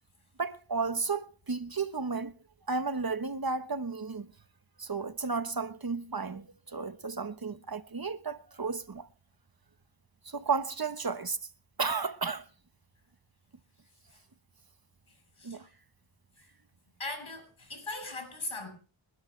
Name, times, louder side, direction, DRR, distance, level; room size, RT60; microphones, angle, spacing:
voice 1, 0.4-2.3 2.7-4.3 4.8-9.1 10.2-11.4 11.8-12.5 15.4-15.7, right 4 dB, 50° right, 1.2 m, -33 dB
voice 2, 15.1-15.7 17.0-18.7, left 2 dB, 85° left, 7.1 m, -40 dB
29.5 x 12.0 x 3.3 m
wide cardioid pair, 55°, 48 cm